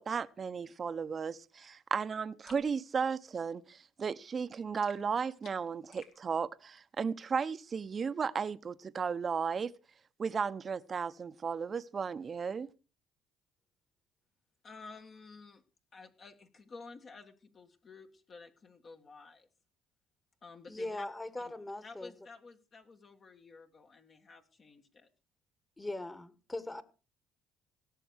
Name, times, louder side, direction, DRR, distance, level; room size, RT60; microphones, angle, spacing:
voice 1, 0.0-9.7 10.2-12.7, right 6 dB, 40° right, 0.9 m, -35 dB
sound 1, 2.5-2.7 4.8-6.2, left 5 dB, 65° left, 3.0 m, -57 dB
voice 2, 14.6-15.6 15.9-19.5 20.4-21.1 21.4-21.5 21.8-25.1, left 4 dB, 45° left, 1.8 m, -52 dB
voice 3, 20.7-22.1 25.8-26.8, left 2 dB, 15° left, 1.7 m, -40 dB
17.0 x 6.8 x 6.4 m
supercardioid pair, 75°, 0 cm